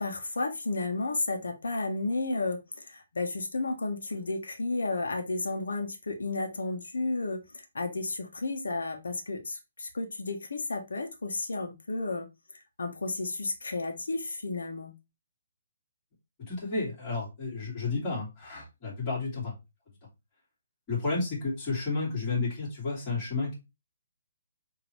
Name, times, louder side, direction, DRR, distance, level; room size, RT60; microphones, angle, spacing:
voice 1, 0.0-12.3 12.8-14.9, left 3 dB, 85° left, 4 dB, 1.2 m, -32 dB
voice 2, 16.4-19.5 20.9-23.5, left 3 dB, 25° left, -8 dB, 2.6 m, -31 dB
5.1 x 3.0 x 3.2 m, 0.24 s
hypercardioid pair, 155°, 0 cm